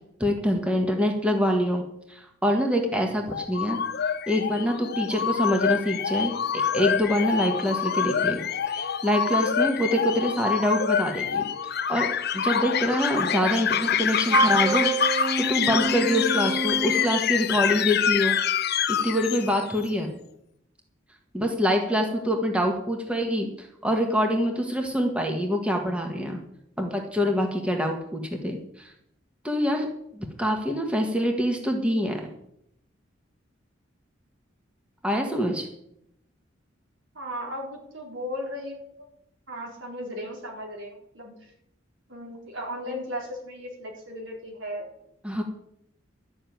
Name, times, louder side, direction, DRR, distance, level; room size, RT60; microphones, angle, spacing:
voice 1, 0.2-1.8 2.1-3.8 4.3-8.4 8.7-11.4 11.9-12.1 12.3-18.4 18.9-20.1 21.3-26.4 26.8-28.9 29.4-32.2 35.0-35.7 45.2-45.4, equal, 5° right, 2 dB, 1.5 m, -25 dB
sound 1, 3.3-19.8, left 8 dB, 55° left, 0.7 m, -26 dB
Wind instrument woodwind instrument, 14.3-17.2, right 3 dB, 20° right, 0.4 m, -26 dB
voice 2, 37.1-39.1 39.5-41.5 42.1-44.9, equal, 75° right, 0 dB, 4.4 m, -36 dB
12.5 x 6.6 x 9.3 m, 0.76 s
head